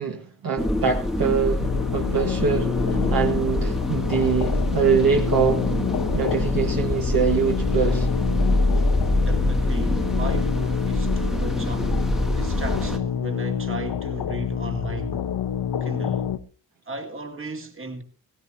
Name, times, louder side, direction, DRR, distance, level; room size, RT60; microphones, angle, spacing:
voice 1, 0.0-1.7 1.9-2.7 3.1-5.7 6.1-8.1, right 6 dB, 60° right, 1.8 m, -23 dB
sound 1, 0.6-13.0, left 1 dB, ahead, 1.3 m, -25 dB
sound 2, 1.6-16.4, left 8 dB, 70° left, 1.0 m, -27 dB
voice 2, 9.2-12.0 12.4-15.2 15.8-16.3 16.9-18.0, right 3 dB, 30° right, 2.5 m, -36 dB
18.0 x 15.5 x 2.9 m
cardioid pair, 85°, 39 cm